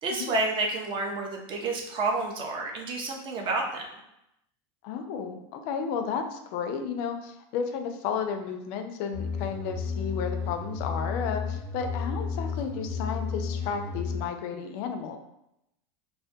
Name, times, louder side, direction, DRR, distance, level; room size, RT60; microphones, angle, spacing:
voice 1, 0.0-3.9, right 3 dB, 35° right, 1 dB, 0.5 m, -29 dB
voice 2, 4.8-15.2, left 6 dB, 55° left, 6 dB, 0.4 m, -33 dB
sound 1, 9.1-14.2, left 5 dB, 15° left, 0.6 m, -32 dB
2.2 x 2.2 x 2.6 m, 0.83 s
supercardioid pair, 125°, 15 cm